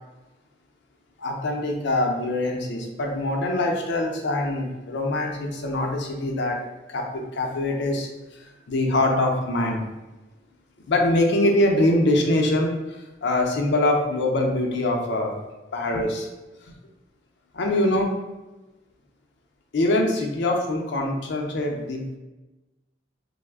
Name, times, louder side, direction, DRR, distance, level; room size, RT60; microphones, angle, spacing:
voice 1, 1.2-6.6 6.9-9.8 10.9-15.3 15.7-16.3 17.5-18.1 19.7-22.2, left 1 dB, 65° left, 1 dB, 0.5 m, -24 dB
3.1 x 2.0 x 3.4 m, 1.1 s
head